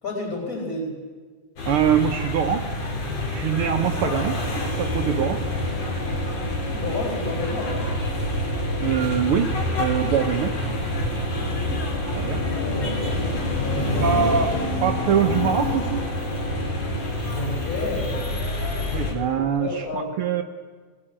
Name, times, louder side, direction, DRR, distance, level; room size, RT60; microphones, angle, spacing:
voice 1, 0.0-0.9 4.0-4.3 6.8-7.9 12.4-14.5 17.3-18.2 19.0-20.1, left 1 dB, 25° left, 0 dB, 5.1 m, -31 dB
sound 1, 1.6-19.1, left 1 dB, 50° left, 4.3 m, -27 dB
voice 2, 1.7-2.6 3.3-5.4 8.8-9.5 9.8-10.6 11.7-11.9 12.1-12.4 14.0-14.5 14.8-16.0 18.9-20.4, right 8 dB, 75° right, 5 dB, 1.2 m, -23 dB
sound 2, 2.7-18.5, equal, 75° left, 5.7 m, -34 dB
21.0 x 17.0 x 8.8 m, 1.5 s
omnidirectional pair, 3.6 m